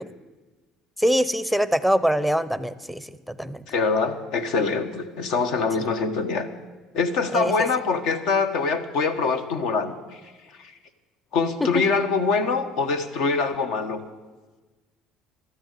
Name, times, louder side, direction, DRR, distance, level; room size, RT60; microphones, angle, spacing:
voice 1, 1.0-3.6 7.3-7.5 11.7-11.8, equal, ahead, 15 dB, 0.6 m, -23 dB
voice 2, 3.7-6.5 6.9-9.9 10.6-10.7 11.3-14.0, left 4 dB, 70° left, 8 dB, 1.3 m, -24 dB
13.0 x 10.5 x 8.4 m, 1.2 s
cardioid pair, 110°, 0 cm